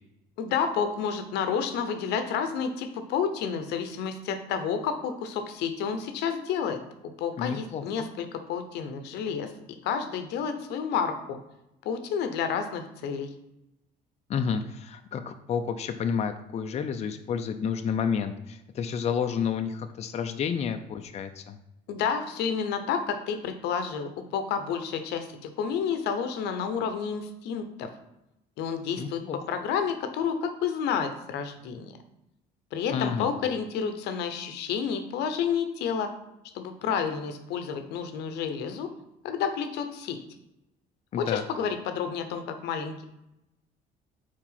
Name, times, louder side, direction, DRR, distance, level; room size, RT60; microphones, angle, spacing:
voice 1, 0.4-6.8 7.2-9.5 9.8-11.4 11.8-13.3 21.9-27.9 28.6-29.2 29.5-32.0 32.7-36.1 36.5-38.9 39.2-40.2 41.2-43.0, left 7 dB, 85° left, 8 dB, 0.7 m, -30 dB
voice 2, 7.4-8.1 14.3-21.6 29.0-29.4 32.9-33.3 41.1-41.4, left 7 dB, 40° left, 7 dB, 0.5 m, -30 dB
4.8 x 4.4 x 5.7 m, 0.87 s
cardioid pair, 110°, 17 cm